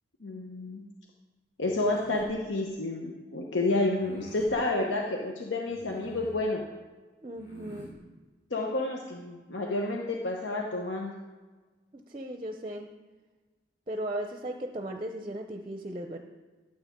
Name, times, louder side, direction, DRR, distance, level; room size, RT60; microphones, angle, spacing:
voice 1, 0.2-0.8 1.6-6.6 8.5-11.1, left 2 dB, 80° left, 0 dB, 1.0 m, -30 dB
sound 1, 1.6-2.3 3.9-4.5 5.7-6.4 7.3-7.9, right 1 dB, 45° left, 3.3 m, -49 dB
voice 2, 7.2-7.9 11.9-12.9 13.9-16.2, right 1 dB, 30° right, 5 dB, 0.6 m, -36 dB
13.0 x 8.0 x 3.6 m, 1.3 s
head